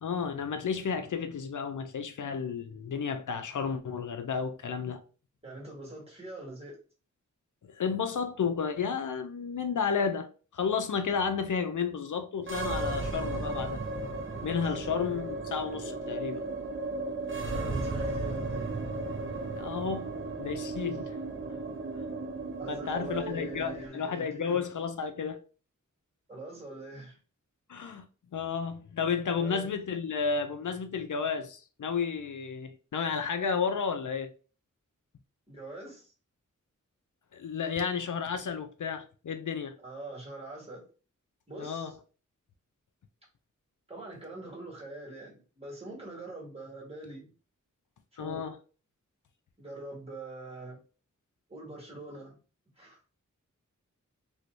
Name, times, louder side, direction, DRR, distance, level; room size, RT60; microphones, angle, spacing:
voice 1, 0.0-5.0 7.6-13.8 14.4-16.4 19.5-20.1 20.4-21.2 22.7-25.4 27.7-28.0 28.3-34.3 37.3-39.8 41.6-41.9 48.2-48.6, left 6 dB, 75° left, 0.5 m, -32 dB
voice 2, 5.4-6.8 14.7-14.9 17.4-18.9 22.6-24.7 26.3-27.2 29.4-29.7 35.5-36.1 39.8-40.9 41.5-42.0 43.9-47.3 48.1-48.4 49.6-50.8 51.5-52.4 52.8-53.0, right 2 dB, 20° right, 1.8 m, -43 dB
sound 1, 12.4-23.9, right 2 dB, 40° right, 0.6 m, -35 dB
3.2 x 3.0 x 2.5 m
wide cardioid pair, 80°, 31 cm